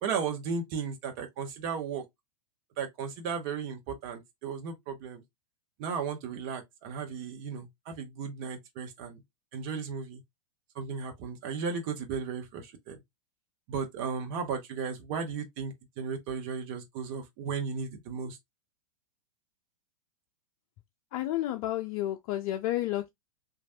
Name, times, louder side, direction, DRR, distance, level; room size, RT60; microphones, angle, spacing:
voice 1, 0.0-2.0 2.8-5.2 5.8-9.2 9.5-10.2 10.7-13.0 13.7-18.4, right 6 dB, 45° right, 0.8 m, -35 dB
voice 2, 21.1-23.1, left 14 dB, 40° left, 0.4 m, -31 dB
3.1 x 2.4 x 2.7 m
hypercardioid pair, 100°, 18 cm